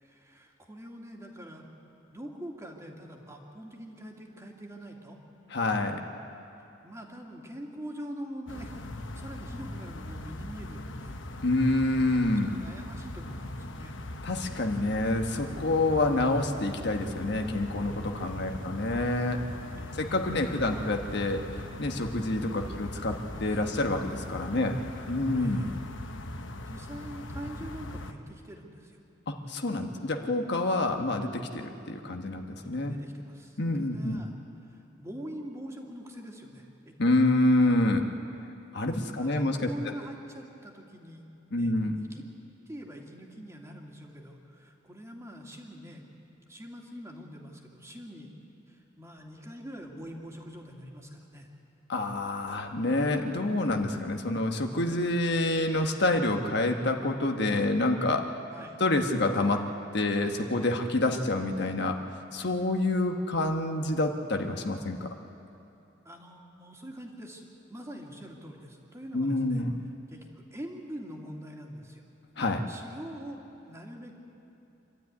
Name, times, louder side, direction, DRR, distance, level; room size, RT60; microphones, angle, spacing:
voice 1, 0.0-1.7 2.1-5.2 6.8-11.2 12.4-14.0 18.4-18.8 19.7-20.1 20.6-21.0 22.6-23.6 24.5-24.7 25.3-25.8 26.6-29.0 32.9-34.3 34.6-37.1 39.1-41.3 41.5-42.2 42.7-46.0 46.5-48.3 48.7-51.5 58.5-58.8 66.0-69.6 70.1-72.0 72.7-73.4 73.7-74.2, equal, 15° right, 0 dB, 2.4 m, -44 dB
voice 2, 5.5-6.0 11.4-12.5 14.2-19.4 19.9-24.8 25.1-25.7 29.3-32.9 33.6-34.2 37.0-38.1 38.7-39.9 41.5-42.0 51.9-58.3 58.8-62.0 62.3-65.1 69.1-69.7 72.4-72.7, left 2 dB, 60° left, 4 dB, 1.3 m, -27 dB
sound 1, 8.5-28.1, left 1 dB, 80° left, 1.1 m, -40 dB
26.0 x 12.5 x 9.5 m, 2.8 s
head